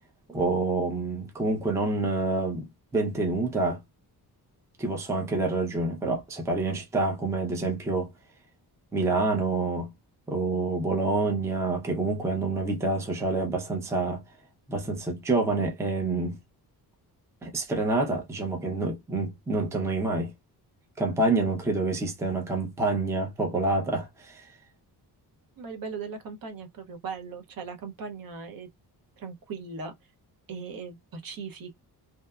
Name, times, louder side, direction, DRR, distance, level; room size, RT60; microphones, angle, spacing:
voice 1, 0.3-2.6 2.9-3.8 4.8-8.1 8.9-9.9 10.3-14.2 14.7-16.4 17.4-20.3 21.0-24.5, right 3 dB, 5° right, 0.4 m, -27 dB
voice 2, 25.6-28.7 29.2-29.9 30.5-31.7, right 5 dB, 60° right, 0.8 m, -38 dB
2.8 x 2.2 x 2.2 m
wide cardioid pair, 175°, 39 cm